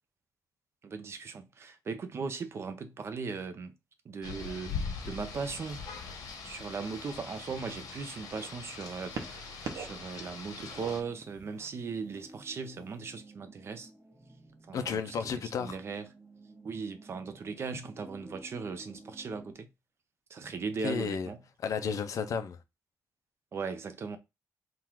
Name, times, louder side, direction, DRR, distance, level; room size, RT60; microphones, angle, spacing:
voice 1, 0.8-3.7 4.0-4.8 5.0-5.9 6.4-13.9 14.7-15.0 15.6-16.1 16.6-19.7 20.3-21.4 23.5-24.2, right 5 dB, 40° right, 0.5 m, -38 dB
Rain, 4.2-11.0, left 5 dB, 90° left, 1.3 m, -41 dB
sound 1, 6.1-6.4 7.2-8.5 9.1-10.0 10.3-11.7 12.6-12.7, right 5 dB, 75° right, 0.9 m, -43 dB
sound 2, 10.9-19.5, right 1 dB, 15° right, 1.3 m, -54 dB
voice 2, 14.7-15.8 20.8-21.3 21.6-22.6, left 6 dB, 60° left, 0.5 m, -32 dB
3.7 x 2.4 x 4.5 m
wide cardioid pair, 175°, 6 cm